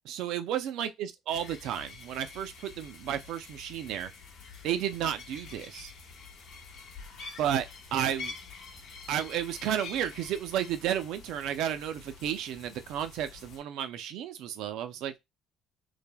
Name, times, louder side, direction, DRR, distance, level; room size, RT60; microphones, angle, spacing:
voice 1, 0.0-4.1 4.6-5.9 7.4-7.7 7.9-8.3 9.1-15.1, right 10 dB, 65° right, 0.4 m, -32 dB
sound 1, 1.3-13.6, left 4 dB, 65° left, 0.9 m, -47 dB
3.2 x 2.0 x 2.2 m
cardioid pair, 155°, 0 cm